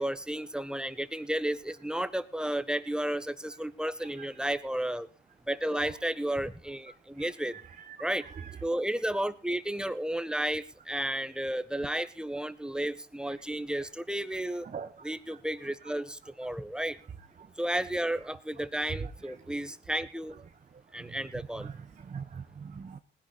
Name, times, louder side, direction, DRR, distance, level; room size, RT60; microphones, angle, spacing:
voice 1, 0.0-5.1 5.5-7.6 8.0-8.2 8.6-14.7 15.0-17.0 17.6-20.3 20.9-21.7, right 1 dB, 5° right, 12 dB, 1.3 m, -32 dB
voice 2, 21.6-23.0, right 6 dB, 40° right, 7 dB, 1.2 m, -41 dB
20.0 x 10.5 x 4.3 m, 0.35 s
cardioid pair, 90°, 20 cm